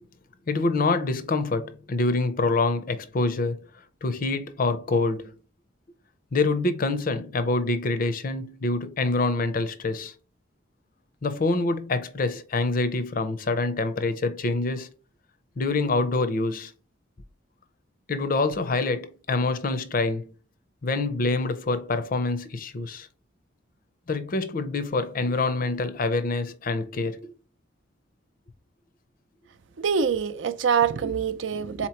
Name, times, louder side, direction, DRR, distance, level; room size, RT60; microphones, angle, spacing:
voice 1, 0.5-3.7 4.0-5.3 6.3-10.1 11.2-14.9 15.6-16.7 18.1-20.3 20.8-23.1 24.1-27.3, left 3 dB, 45° left, 0.5 m, -26 dB
voice 2, 29.8-31.9, right 6 dB, 70° right, 0.5 m, -25 dB
4.2 x 2.9 x 4.4 m
head